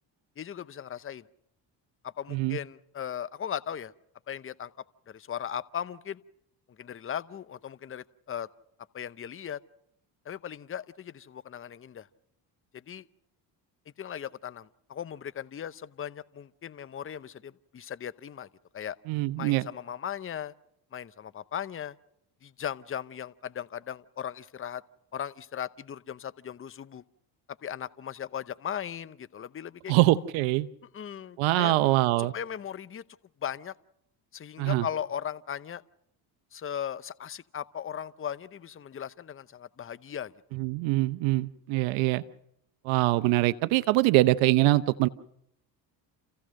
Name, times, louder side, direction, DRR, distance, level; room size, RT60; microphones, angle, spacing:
voice 1, 0.4-1.2 2.0-3.9 4.3-4.7 5.1-6.2 6.8-8.5 8.9-9.6 10.2-12.1 12.7-13.1 14.0-18.5 18.7-19.0 19.4-20.5 20.9-21.9 22.4-24.8 25.1-27.0 27.6-30.0 30.9-31.8 32.2-33.0 33.4-33.7 34.3-35.8 36.5-40.3, left 9 dB, 30° left, 0.8 m, -37 dB
voice 2, 19.1-19.6 29.9-30.7 31.4-32.3 34.6-34.9 40.5-42.2 42.8-45.1, right 18 dB, 80° right, 0.8 m, -24 dB
28.5 x 15.5 x 6.4 m
supercardioid pair, 75°, 46 cm